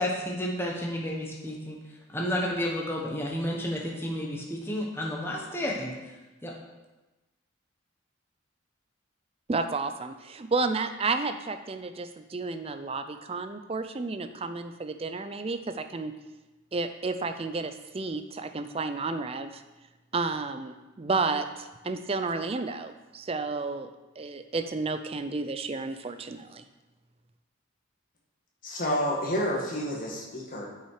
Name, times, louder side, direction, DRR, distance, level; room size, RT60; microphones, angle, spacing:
voice 1, 0.0-1.8 2.1-5.9 6.4-6.5, left 1 dB, 10° left, -2 dB, 1.1 m, -31 dB
voice 2, 9.5-16.1 16.7-19.6 20.1-23.9 24.2-26.6, right 3 dB, 30° right, 9 dB, 0.4 m, -31 dB
voice 3, 28.6-30.7, equal, 40° left, -2 dB, 1.8 m, -29 dB
9.1 x 5.6 x 4.8 m, 1.1 s
head